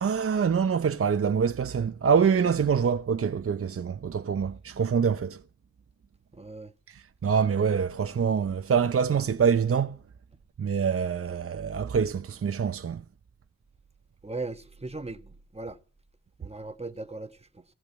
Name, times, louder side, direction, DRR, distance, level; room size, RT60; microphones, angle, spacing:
voice 1, 0.0-5.4 6.9-10.0 10.6-13.0, right 6 dB, 50° right, 0.7 m, -25 dB
voice 2, 6.3-6.7 14.2-15.8 16.4-17.6, right 3 dB, 20° right, 1.2 m, -38 dB
15.0 x 8.8 x 8.4 m
cardioid pair, 55°, 30 cm